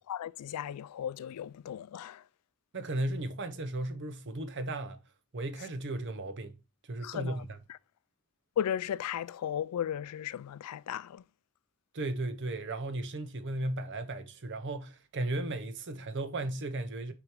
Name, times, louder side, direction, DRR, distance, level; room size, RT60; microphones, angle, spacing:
voice 1, 0.1-2.2 7.0-7.4 8.6-11.2, left 9 dB, 90° left, 0.3 m, -35 dB
voice 2, 2.7-5.0 5.3-6.5 6.9-7.6 11.9-17.1, right 2 dB, 55° right, 0.7 m, -35 dB
6.4 x 5.0 x 3.1 m
head